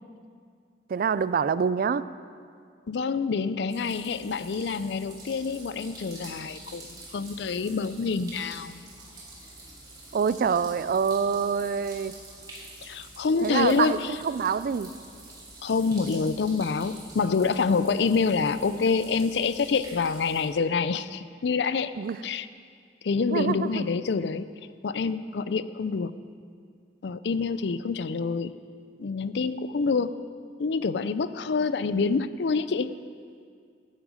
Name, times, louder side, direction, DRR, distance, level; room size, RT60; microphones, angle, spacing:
voice 1, 0.9-2.1 10.1-12.1 13.4-14.9 22.0-22.2 23.3-23.8, right 6 dB, 55° right, 16 dB, 0.3 m, -26 dB
voice 2, 2.9-8.8 12.8-14.2 15.6-21.9 22.2-22.5 23.0-24.5 24.8-26.1 27.0-28.5 29.0-30.2 30.6-32.9, left 4 dB, 70° left, 14 dB, 0.4 m, -27 dB
sound 1, 3.7-20.5, right 2 dB, 20° right, 2.9 m, -47 dB
14.5 x 9.1 x 5.0 m, 2.2 s
head